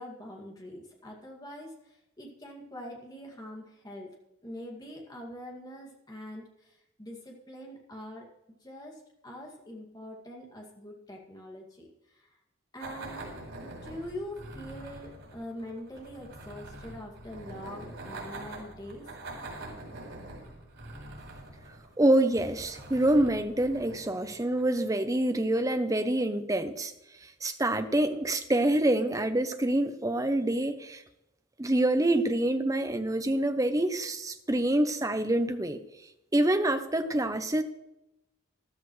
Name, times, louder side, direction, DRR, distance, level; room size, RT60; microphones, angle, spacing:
voice 1, 0.0-4.2 4.4-8.3 8.6-12.3 12.7-13.3 13.6-19.1, left 1 dB, 20° left, 0 dB, 2.2 m, -44 dB
sound 1, 12.8-25.0, right 2 dB, 90° right, 4.4 m, -45 dB
voice 2, 22.0-26.9 27.2-31.0 31.6-35.8 36.3-37.6, right 1 dB, 15° right, 9 dB, 0.7 m, -26 dB
13.5 x 12.5 x 3.2 m, 0.91 s
head